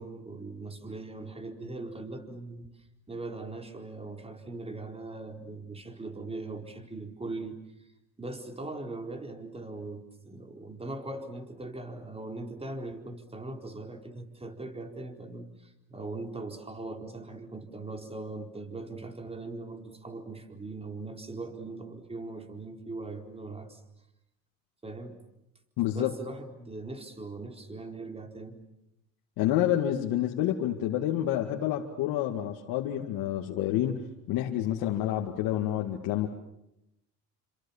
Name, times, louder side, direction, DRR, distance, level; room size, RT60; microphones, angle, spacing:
voice 1, 0.0-2.7 3.1-7.6 8.2-23.8 24.8-25.3 25.9-28.6, right 2 dB, 15° right, 5 dB, 4.3 m, -40 dB
voice 2, 25.8-26.1 29.4-36.3, left 12 dB, 70° left, 0 dB, 2.2 m, -28 dB
29.0 x 26.0 x 7.3 m, 0.85 s
supercardioid pair, 90°, 37 cm